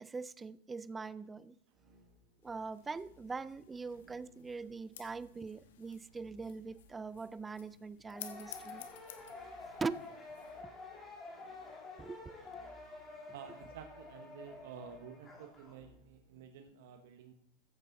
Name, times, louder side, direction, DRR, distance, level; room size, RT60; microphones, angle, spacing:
voice 1, 0.0-1.5 2.4-8.8 9.8-10.0 12.0-12.3, right 4 dB, 10° right, 0.4 m, -42 dB
sound 1, 1.7-16.5, right 2 dB, 35° right, 4.5 m, -66 dB
sound 2, 2.4-10.6, left 10 dB, 85° left, 1.3 m, -55 dB
sound 3, 8.1-15.7, left 3 dB, 15° left, 3.0 m, -49 dB
voice 2, 13.3-17.3, right 7 dB, 70° right, 1.2 m, -51 dB
14.5 x 8.2 x 4.1 m
supercardioid pair, 150°, 0 cm